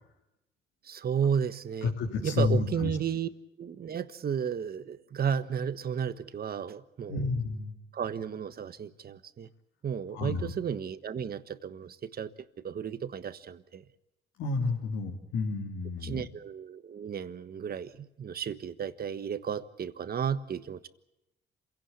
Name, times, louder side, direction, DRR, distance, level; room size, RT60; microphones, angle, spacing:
voice 1, 0.8-1.9 2.2-3.3 3.6-7.3 7.9-9.5 9.8-12.3 12.6-13.8 16.0-20.9, right 7 dB, 50° right, 1.4 m, -33 dB
voice 2, 1.8-3.0 7.1-7.7 10.1-10.5 14.4-16.2, left 4 dB, 80° left, 3.5 m, -30 dB
27.0 x 17.0 x 8.4 m
cardioid pair, 90°, 20 cm